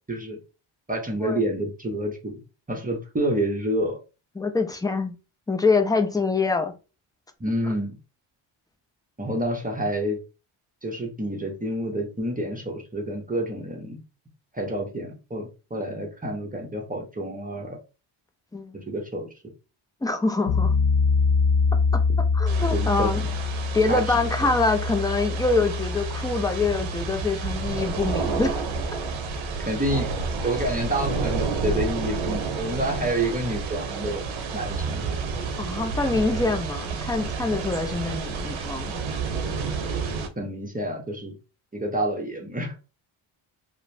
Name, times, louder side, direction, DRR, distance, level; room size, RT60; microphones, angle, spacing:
voice 1, 0.1-0.4 0.9-2.4 2.7-4.0 7.4-8.0 9.2-10.2 10.8-14.0 14.5-17.8 18.7-19.3 22.7-23.3 23.9-24.5 29.6-30.1 30.4-34.2 34.5-35.0 40.4-41.4 41.7-42.7, right 1 dB, 15° right, 0.8 m, -28 dB
voice 2, 4.4-5.1 5.5-6.7 18.5-18.8 20.0-20.8 21.9-22.0 22.3-23.2 23.7-28.6 35.6-39.0, left 3 dB, 10° left, 0.4 m, -25 dB
sound 1, 20.5-31.4, left 4 dB, 85° left, 0.7 m, -26 dB
sound 2, 22.5-40.3, right 5 dB, 65° right, 0.7 m, -30 dB
2.8 x 2.1 x 2.6 m
cardioid pair, 70°, 49 cm